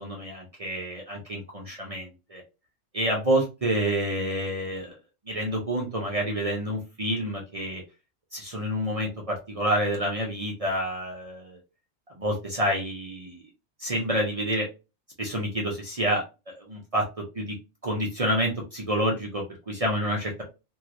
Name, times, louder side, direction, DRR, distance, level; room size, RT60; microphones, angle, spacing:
voice 1, 0.0-2.4 2.9-5.0 5.3-7.8 8.3-11.6 12.2-13.4 13.8-14.7 15.2-17.1 17.3-17.5 17.8-20.4, equal, 35° right, -1 dB, 0.7 m, -28 dB
3.0 x 2.8 x 2.5 m, 0.28 s
omnidirectional pair, 1.2 m